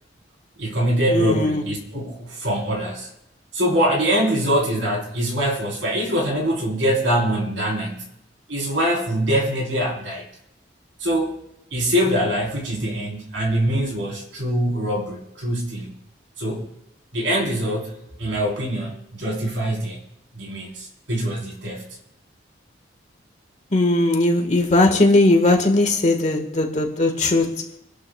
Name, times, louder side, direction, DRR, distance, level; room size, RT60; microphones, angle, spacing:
voice 1, 0.6-3.1 3.5-8.0 8.5-10.2 11.0-11.4 11.7-15.9 16.4-16.7 17.1-17.9 18.2-20.0 20.3-21.8, equal, 75° right, 4.2 m, -23 dB
voice 2, 1.1-1.7 23.7-27.7, left 2 dB, 35° left, 1.7 m, -18 dB
26.5 x 11.5 x 2.4 m
head